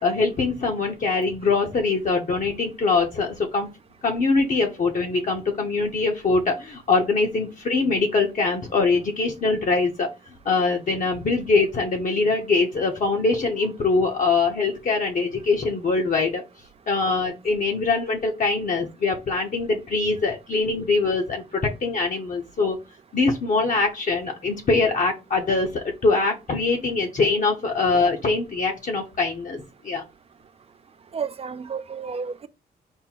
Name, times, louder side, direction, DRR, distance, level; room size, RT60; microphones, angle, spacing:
voice 1, 0.0-3.7 4.0-10.1 10.4-16.4 16.9-22.8 23.1-30.0, left 3 dB, 50° left, 0.9 m, -23 dB
voice 2, 31.1-32.5, right 6 dB, 35° right, 0.3 m, -31 dB
5.4 x 2.2 x 4.4 m
wide cardioid pair, 135°, 17 cm